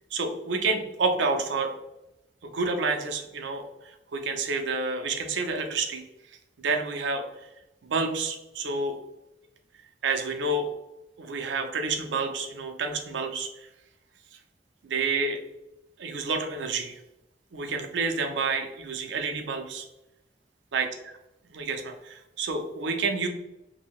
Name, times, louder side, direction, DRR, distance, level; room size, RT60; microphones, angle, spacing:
voice 1, 0.1-1.7 2.4-6.0 6.6-7.5 7.8-9.0 10.0-10.7 11.2-13.7 14.8-15.4 16.0-17.0 17.5-19.9 20.7-20.9 21.5-23.3, right 3 dB, 85° right, 4 dB, 0.5 m, -29 dB
2.7 x 2.7 x 3.0 m, 0.91 s
head